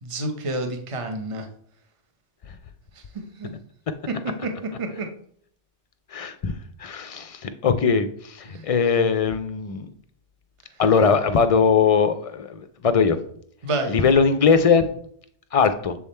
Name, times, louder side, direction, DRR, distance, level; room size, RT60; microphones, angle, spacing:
voice 1, 0.0-1.5 3.1-3.5 4.1-5.1 8.5-8.6 13.6-13.9, right 2 dB, 35° right, 4 dB, 0.8 m, -29 dB
voice 2, 6.1-6.5 6.8-9.9 10.8-13.2 13.9-14.9 15.5-16.0, left 5 dB, 55° left, 10 dB, 0.4 m, -20 dB
7.0 x 3.6 x 4.2 m, 0.64 s
omnidirectional pair, 1.1 m